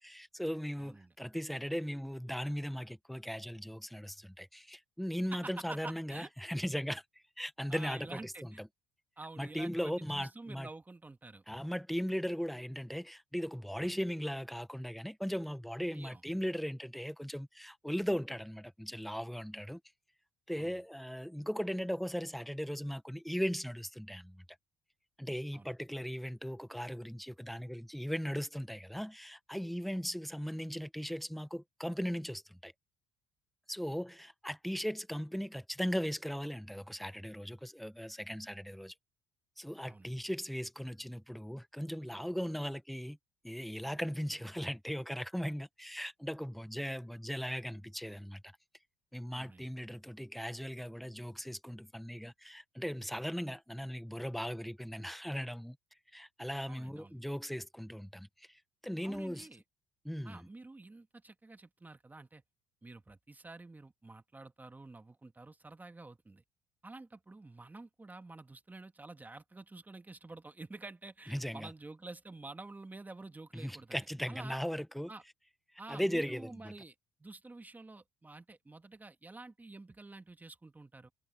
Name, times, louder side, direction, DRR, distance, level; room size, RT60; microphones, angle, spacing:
voice 1, 0.0-7.0 7.4-8.3 8.6-8.7 9.4-10.7 11.5-19.8 20.5-24.4 25.2-32.7 33.7-38.9 39.6-43.2 43.4-48.5 49.1-55.8 56.1-59.5 60.0-60.5 71.3-71.7 73.5-75.1 75.9-76.7, equal, ahead, 1.5 m, -38 dB
voice 2, 0.8-1.1 5.3-6.3 7.7-8.6 9.2-11.4 15.9-16.2 20.6-20.8 25.5-25.7 39.9-40.1 49.3-49.7 56.7-57.2 59.0-59.6 60.2-62.4 62.8-66.4 66.8-74.6 75.1-75.2 75.8-76.9 77.2-81.1, right 2 dB, 15° right, 2.4 m, -49 dB
hypercardioid pair, 60°, 10 cm